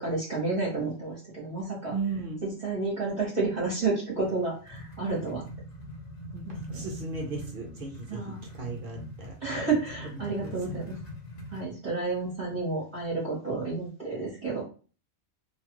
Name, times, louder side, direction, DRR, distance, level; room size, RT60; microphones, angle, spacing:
voice 1, 0.0-1.9 2.4-5.4 6.4-6.8 8.1-8.4 9.4-11.0 11.5-14.6, right 3 dB, 35° right, -6 dB, 1.0 m, -30 dB
voice 2, 1.9-2.4 6.3-8.2 8.5-9.4 10.4-10.8 12.0-12.6, right 4 dB, 55° right, 0 dB, 0.7 m, -36 dB
sound 1, 4.2-11.7, equal, 40° left, 0.7 m, -42 dB
2.9 x 2.3 x 2.9 m, 0.37 s
omnidirectional pair, 1.5 m